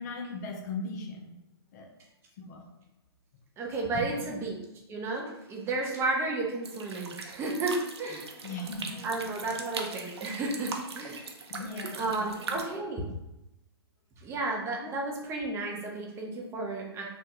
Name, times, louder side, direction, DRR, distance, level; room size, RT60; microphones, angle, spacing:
voice 1, 0.0-1.3 1.7-1.9 2.4-2.7 3.9-4.4 8.4-9.1 11.5-12.6 13.0-13.1 14.8-14.9, left 3 dB, 40° left, 3 dB, 0.5 m, -38 dB
voice 2, 3.6-4.6 4.9-8.3 9.0-11.3 12.0-13.0 14.2-17.0, right 2 dB, 20° right, -1 dB, 0.6 m, -32 dB
sound 1, 6.6-12.6, right 4 dB, 80° right, 0.6 m, -40 dB
3.5 x 2.2 x 2.9 m, 0.92 s
hypercardioid pair, 125°, 14 cm